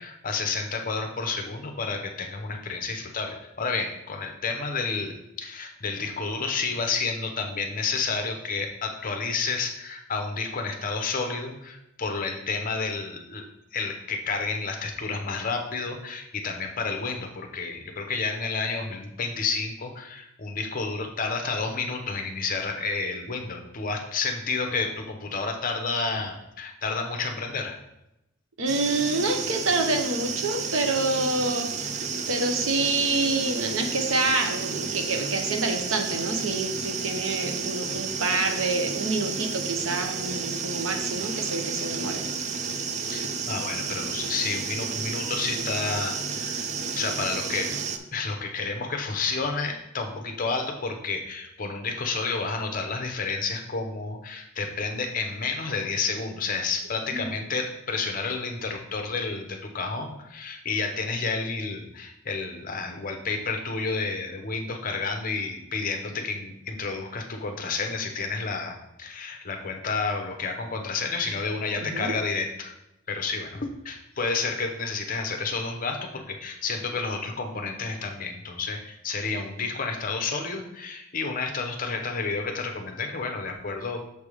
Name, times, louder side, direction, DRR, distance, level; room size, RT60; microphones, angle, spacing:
voice 1, 0.0-13.4 13.7-27.7 43.1-46.7 47.0-47.7 48.1-72.7 73.1-84.0, left 4 dB, 40° left, 4 dB, 0.8 m, -30 dB
voice 2, 28.6-31.7 32.3-42.2 57.1-57.3 71.8-72.1, right 3 dB, 70° right, 5 dB, 0.8 m, -27 dB
sound 1, 28.7-48.0, right 5 dB, 35° right, 0.4 m, -31 dB
6.7 x 3.5 x 4.8 m, 0.87 s
head